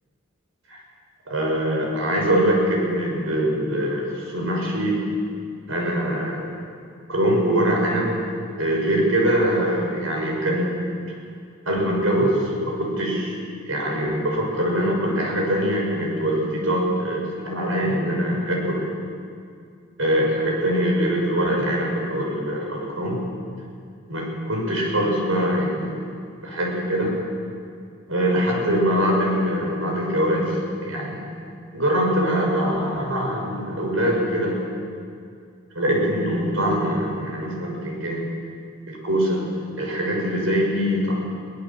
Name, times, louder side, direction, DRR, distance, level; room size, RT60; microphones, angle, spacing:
voice 1, 1.3-5.0 5.7-6.6 7.1-8.2 8.6-10.9 11.6-13.3 13.7-18.9 20.0-23.2 24.1-26.1 26.4-27.2 28.1-30.6 30.8-31.2 31.7-34.5 35.7-38.3 38.9-39.4 39.8-41.3, equal, 75° right, 0 dB, 6.5 m, -23 dB
24.0 x 18.0 x 7.5 m, 2.3 s
head